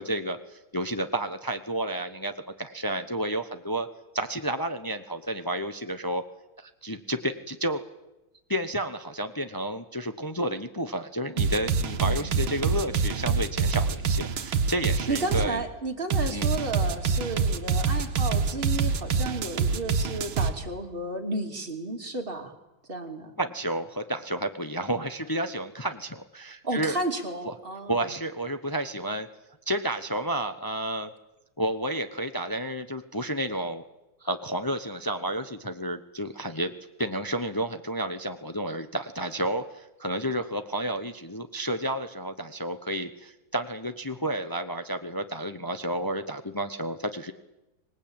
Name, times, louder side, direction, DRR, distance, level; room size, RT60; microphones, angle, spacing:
voice 1, 0.0-3.9 4.1-6.2 6.6-7.8 8.5-15.6 16.3-16.5 23.4-26.9 27.5-27.6 27.9-29.3 29.7-31.1 31.6-33.8 34.2-36.7 37.0-47.3, right 1 dB, 35° left, 8 dB, 0.3 m, -31 dB
sound 1, 11.4-15.5 16.1-20.5, right 5 dB, 85° right, 2.1 m, -25 dB
voice 2, 15.1-22.5 22.9-23.3 26.6-28.2, right 2 dB, 25° right, 2 dB, 3.0 m, -32 dB
25.5 x 19.5 x 8.8 m, 0.99 s
omnidirectional pair, 2.2 m